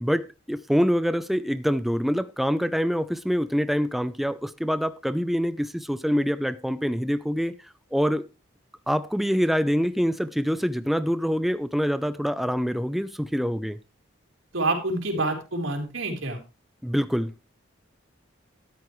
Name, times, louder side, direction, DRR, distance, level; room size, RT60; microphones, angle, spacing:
voice 1, 0.0-7.6 7.9-8.2 8.9-13.8 16.8-17.3, equal, ahead, 0.6 m, -25 dB
voice 2, 14.5-16.4, right 2 dB, 85° right, 4.2 m, -27 dB
13.0 x 13.0 x 3.2 m
head